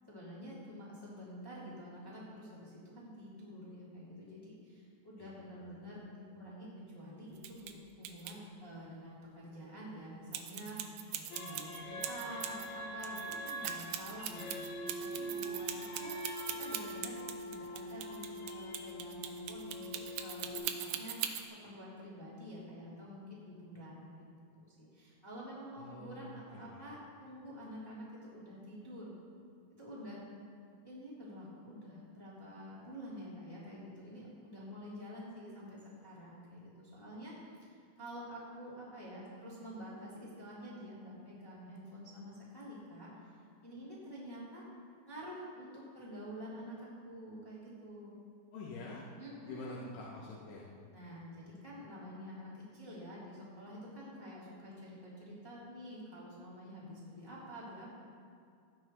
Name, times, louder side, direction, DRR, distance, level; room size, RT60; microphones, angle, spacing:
voice 1, 0.1-7.7 8.0-17.1 17.4-24.3 24.6-29.1 29.8-30.2 30.8-37.3 37.7-43.1 43.6-44.6 45.0-48.1 49.2-49.8 50.9-57.9, equal, 5° left, -9 dB, 2.7 m, -48 dB
voice 2, 5.2-5.6 25.8-26.8 48.5-49.1 49.5-50.7, left 2 dB, 80° left, -5 dB, 2.8 m, -47 dB
sound 1, 7.4-7.7 8.0-8.3 10.3-12.7 13.0-21.5, right 11 dB, 75° right, 1.9 m, -40 dB
sound 2, 11.3-20.6, right 1 dB, 65° left, 2.4 m, -43 dB
17.0 x 9.6 x 3.2 m, 2.4 s
omnidirectional pair, 3.8 m